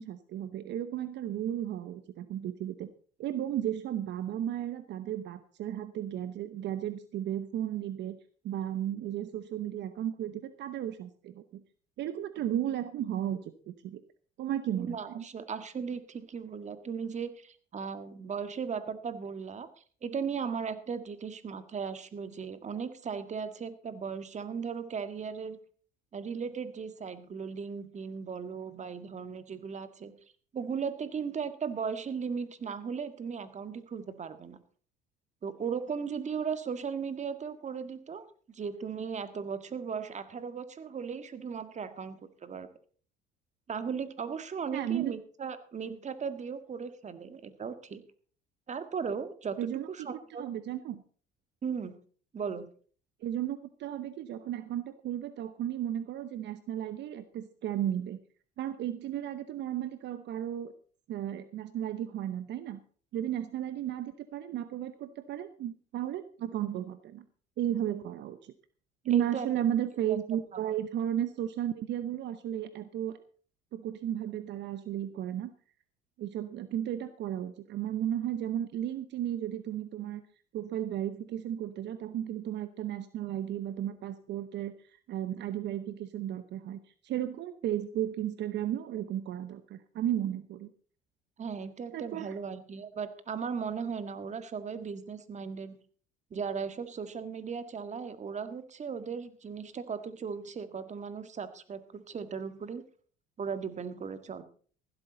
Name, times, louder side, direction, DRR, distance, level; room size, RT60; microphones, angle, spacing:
voice 1, 0.0-2.9 3.2-8.2 8.4-11.6 12.0-14.0 14.4-15.2 44.7-45.1 49.6-49.9 50.4-51.0 53.2-58.2 58.6-60.7 61.1-62.8 63.1-67.2 67.6-68.5 69.0-73.2 73.7-75.5 76.2-80.2 80.5-90.7 91.9-92.4, right 11 dB, 60° right, 12 dB, 0.9 m, -34 dB
voice 2, 14.8-19.7 20.0-25.6 26.1-30.1 30.5-34.6 35.4-42.7 43.7-48.0 48.7-50.4 51.6-52.0 52.3-52.7 69.1-69.5 70.5-70.7 91.4-95.8 96.3-102.8 103.4-104.4, right 6 dB, 35° right, 11 dB, 1.7 m, -37 dB
15.0 x 12.5 x 4.0 m, 0.43 s
supercardioid pair, 90°, 21 cm